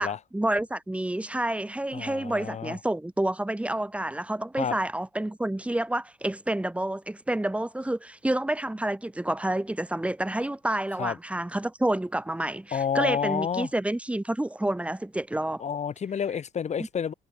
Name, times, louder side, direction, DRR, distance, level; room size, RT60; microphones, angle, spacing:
voice 1, 0.0-15.6, right 1 dB, 5° right, 5.7 m, -29 dB
voice 2, 1.9-2.8 4.6-4.8 11.0-11.2 12.7-13.7 15.6-17.1, left 7 dB, 40° left, 7.0 m, -29 dB
cardioid pair, 110°, 17 cm